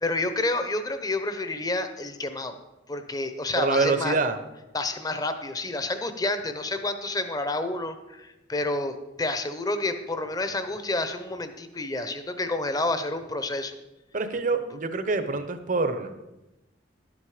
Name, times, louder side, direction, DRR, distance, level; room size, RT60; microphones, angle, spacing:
voice 1, 0.0-2.5 2.9-4.2 4.7-13.7, left 2 dB, 20° left, 9 dB, 0.8 m, -29 dB
voice 2, 3.5-4.4 14.1-16.1, right 3 dB, 45° right, 10 dB, 0.9 m, -26 dB
11.5 x 8.8 x 5.0 m, 1.0 s
head